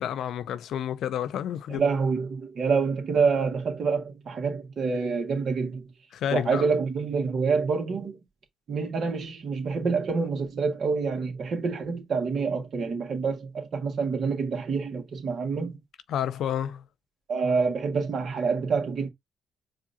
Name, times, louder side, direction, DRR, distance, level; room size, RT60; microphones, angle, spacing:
voice 1, 0.0-1.8 6.1-6.7 16.1-16.8, left 10 dB, 70° left, 0.5 m, -30 dB
voice 2, 1.7-5.8 6.3-8.1 8.7-15.8 17.3-19.1, right 5 dB, 60° right, 1.6 m, -27 dB
4.9 x 2.7 x 2.6 m
supercardioid pair, 55°, 0 cm